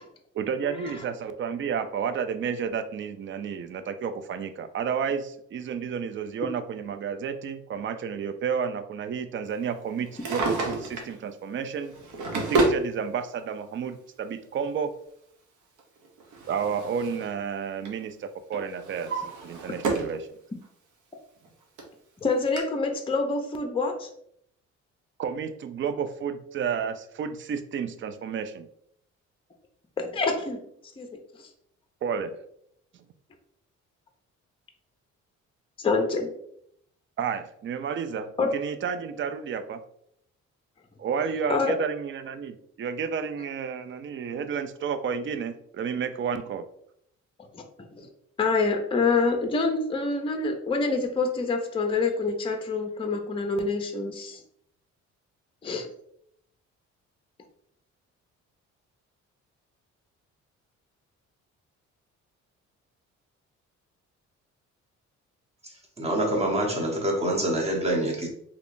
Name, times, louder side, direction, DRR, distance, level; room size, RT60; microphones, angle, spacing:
voice 1, 0.3-11.9 12.5-14.9 16.5-19.1 19.4-20.3 25.2-28.7 32.0-32.4 37.2-39.8 41.0-46.6, right 6 dB, 40° right, 10 dB, 0.4 m, -31 dB
Drawer open or close, 10.0-11.2 11.9-12.8 13.9-14.0 15.8-17.3 17.6-18.0 18.5-20.2 20.6-20.7 21.4-21.5 21.8-21.9 22.6-22.7, right 3 dB, 80° right, 0.8 m, -29 dB
voice 2, 22.2-24.1 30.0-30.6 31.0-31.2 35.8-36.3 38.4-38.5 41.5-41.7 47.5-47.6 48.0-48.1 48.4-54.4 55.6-55.9, left 3 dB, 20° left, 4 dB, 0.5 m, -26 dB
voice 3, 66.0-68.3, right 1 dB, 20° right, 0 dB, 1.0 m, -26 dB
3.5 x 2.9 x 2.5 m, 0.70 s
cardioid pair, 90°, 30 cm